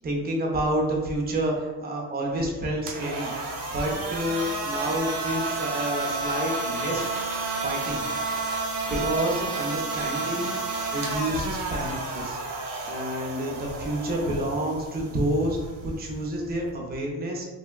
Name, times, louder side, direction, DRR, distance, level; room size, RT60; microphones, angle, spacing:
voice 1, 0.0-7.3 7.6-8.0 8.8-10.6 10.9-12.4 12.8-17.5, right 1 dB, 25° right, -1 dB, 0.5 m, -29 dB
sound 1, 2.5-13.9, equal, 50° left, 0.7 m, -44 dB
sound 2, 2.7-16.8, right 3 dB, 75° right, 0.7 m, -31 dB
3.1 x 2.6 x 2.3 m, 1.3 s
cardioid pair, 135°, 42 cm